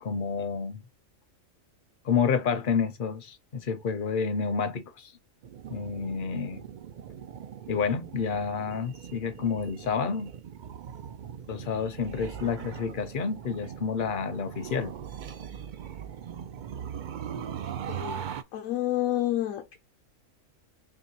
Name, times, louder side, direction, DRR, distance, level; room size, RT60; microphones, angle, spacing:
voice 1, 0.0-0.8 2.0-5.1 5.7-6.6 7.7-10.3 11.5-14.9, left 6 dB, 50° left, 0.7 m, -29 dB
sound 1, 5.4-18.4, right 8 dB, 85° right, 0.4 m, -40 dB
voice 2, 17.9-18.2 18.5-19.8, left 14 dB, 80° left, 1.1 m, -29 dB
4.5 x 3.0 x 2.7 m
omnidirectional pair, 1.4 m